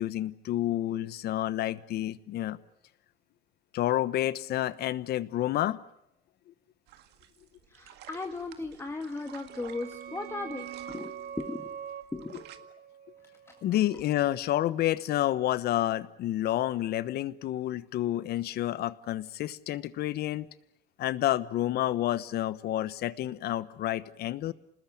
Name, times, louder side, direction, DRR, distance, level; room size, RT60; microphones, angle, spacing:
voice 1, 0.0-2.6 3.7-5.8 13.6-20.5 21.0-24.5, left 13 dB, 70° left, 16 dB, 1.2 m, -29 dB
sound 1, 6.9-12.6, right 12 dB, 80° right, 2.0 m, -53 dB
voice 2, 7.7-11.7 12.1-12.4, left 3 dB, 15° left, 5 dB, 1.9 m, -37 dB
sound 2, 9.0-14.5, right 9 dB, 60° right, 2.0 m, -44 dB
27.5 x 20.0 x 8.6 m, 0.82 s
cardioid pair, 110°, 17 cm